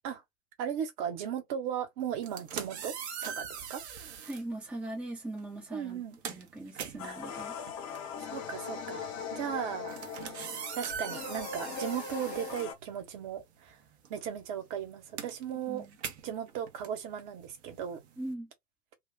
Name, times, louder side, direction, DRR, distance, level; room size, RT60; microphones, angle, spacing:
voice 1, 0.6-3.8 5.7-6.1 7.0-7.2 8.2-10.0 10.7-13.8 14.1-15.9 16.2-18.0, right 9 dB, 30° right, 1.1 m, -37 dB
sound 1, 2.1-4.5 5.4-5.6 5.9-13.4 13.7-18.3, right 7 dB, 45° right, 1.1 m, -42 dB
voice 2, 4.2-7.6 15.7-16.0 18.2-18.5, right 1 dB, 5° right, 0.9 m, -40 dB
sound 2, 7.0-12.7, left 6 dB, 25° left, 0.9 m, -40 dB
4.0 x 2.4 x 2.6 m
figure-of-eight pair, 105°, 46 cm